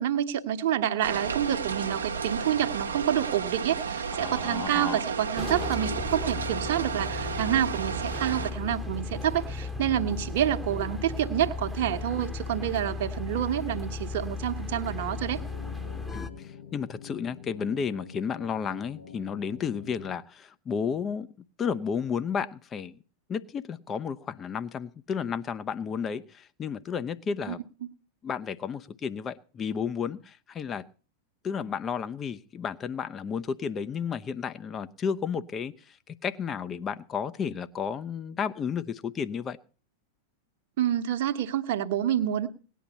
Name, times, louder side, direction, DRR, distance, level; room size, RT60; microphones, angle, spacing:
voice 1, 0.0-15.4 27.5-27.6 40.8-42.5, right 11 dB, 50° right, 1.2 m, -28 dB
sound 1, 1.0-8.5, right 5 dB, 70° right, 1.1 m, -33 dB
voice 2, 4.1-5.0 16.1-21.3 21.6-23.0 23.3-27.6 28.2-30.8 31.4-39.6, left 6 dB, 25° left, 0.8 m, -32 dB
sound 2, 5.4-16.3, left 4 dB, ahead, 1.1 m, -36 dB
sound 3, 15.1-20.2, left 7 dB, 65° left, 1.7 m, -46 dB
18.5 x 10.5 x 4.2 m
figure-of-eight pair, 90°, 0 cm